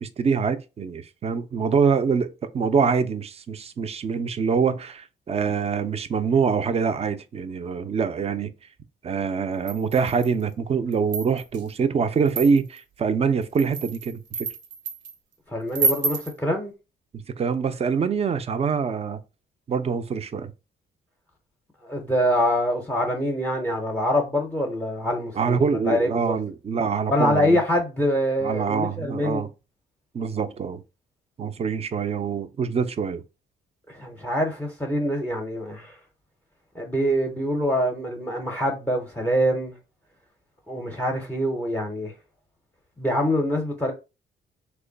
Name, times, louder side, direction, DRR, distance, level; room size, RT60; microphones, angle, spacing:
voice 1, 0.0-8.5 9.0-14.2 17.1-19.2 19.7-20.5 25.4-27.6 28.4-29.5 30.1-30.8 31.4-33.2, right 6 dB, 30° right, 0.4 m, -25 dB
sound 1, 9.7-10.4 10.9-11.6 12.3-12.8 13.4-15.1 15.7-16.3, right 4 dB, 65° right, 0.7 m, -28 dB
voice 2, 15.5-16.7 21.8-26.4 27.1-29.4 33.9-36.0 36.7-39.8 40.7-42.1 43.0-43.9, equal, 10° left, 0.6 m, -25 dB
3.0 x 2.2 x 3.8 m
cardioid pair, 90°, 20 cm